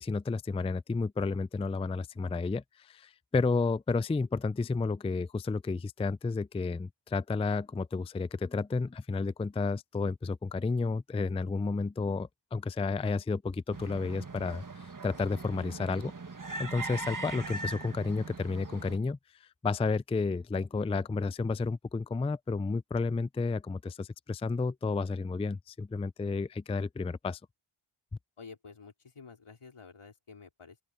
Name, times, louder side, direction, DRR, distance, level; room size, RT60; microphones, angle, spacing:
voice 1, 0.0-16.1 16.6-27.4, left 4 dB, 15° left, 0.4 m, -31 dB
sound 1, 13.7-19.0, right 3 dB, 40° right, 1.8 m, -40 dB
voice 2, 28.4-30.8, left 5 dB, 85° left, 4.7 m, -50 dB
open air
wide cardioid pair, 55°, 49 cm